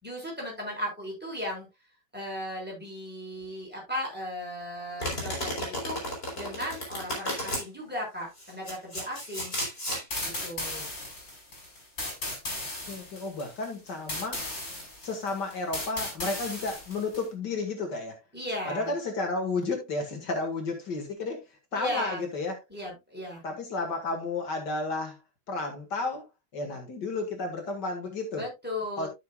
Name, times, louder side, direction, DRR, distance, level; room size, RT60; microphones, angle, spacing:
voice 1, 0.0-1.7 2.1-6.0 6.3-9.6 10.2-10.9 18.3-18.9 21.7-22.2 22.7-23.4 28.4-29.1, left 1 dB, 5° right, 6.2 m, -36 dB
Domestic sounds home sounds, 5.0-7.6 8.4-10.0, equal, 30° left, 4.3 m, -33 dB
sound 1, 10.1-17.3, left 1 dB, 55° left, 5.0 m, -36 dB
voice 2, 12.9-14.4 15.0-18.2 18.7-21.4 21.7-22.6 23.4-25.2 25.5-26.2 26.5-28.4 29.0-29.1, left 3 dB, 70° left, 2.5 m, -32 dB
13.0 x 6.9 x 2.4 m
omnidirectional pair, 1.9 m